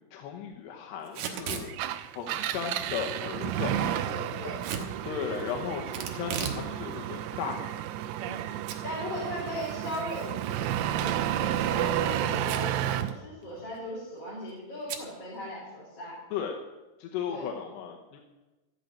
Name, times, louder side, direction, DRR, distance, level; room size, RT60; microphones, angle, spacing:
voice 1, 0.1-1.8 2.2-3.8 5.0-7.6 16.3-16.6 17.0-18.2, left 7 dB, 75° left, 2 dB, 2.8 m, -35 dB
Packing tape duct tape / Tearing, 1.1-1.7 4.6-4.9 5.9-6.6 7.0-7.1 7.8-8.4 8.7-8.8 9.2-9.3 11.2-11.5 12.4-12.8 13.1-13.2 13.4-13.8 14.9-15.1, right 7 dB, 70° right, 3.2 m, -35 dB
Engine, 1.7-13.2, right 11 dB, 85° right, 2.5 m, -31 dB
voice 2, 3.8-4.6 8.2-8.5 8.8-16.2 17.3-17.5, equal, 30° left, -7 dB, 4.6 m, -38 dB
14.5 x 6.6 x 9.5 m, 1.1 s
omnidirectional pair, 5.6 m